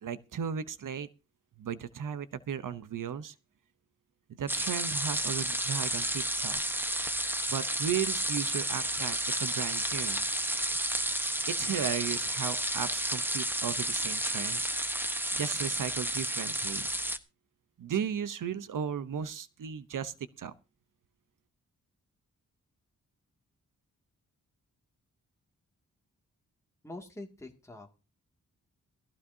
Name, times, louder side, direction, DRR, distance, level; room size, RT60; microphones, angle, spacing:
voice 1, 0.0-1.1 1.6-3.3 4.4-6.6 7.5-10.2 11.5-14.7 15.3-16.9 17.8-20.5, right 8 dB, 75° right, 14 dB, 0.9 m, -35 dB
sound 1, 4.5-17.2, right 1 dB, 5° right, 1.1 m, -31 dB
voice 2, 26.8-28.0, left 2 dB, 10° left, 1 dB, 2.3 m, -45 dB
18.0 x 15.0 x 2.8 m, 0.31 s
wide cardioid pair, 110°, 32 cm